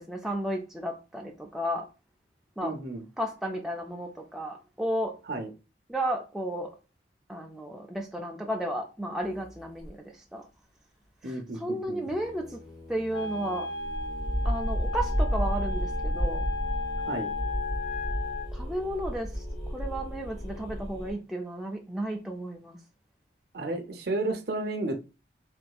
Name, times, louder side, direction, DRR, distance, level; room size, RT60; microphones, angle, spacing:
voice 1, 0.0-1.8 2.6-2.8 3.2-5.1 5.9-6.7 7.3-10.0 10.3-10.4 11.6-12.6 12.9-13.7 14.4-16.4 18.5-19.3 19.7-22.8, right 1 dB, ahead, 0.3 m, -33 dB
voice 2, 2.6-3.1 5.3-5.5 11.2-12.1 17.1-17.3 23.5-25.0, right 2 dB, 55° right, 0.6 m, -32 dB
sound 1, 9.2-9.9 12.0-21.1, equal, 50° left, 1.9 m, -33 dB
Wind instrument woodwind instrument, 13.1-18.5, left 3 dB, 90° left, 0.8 m, -35 dB
3.8 x 2.5 x 2.3 m
head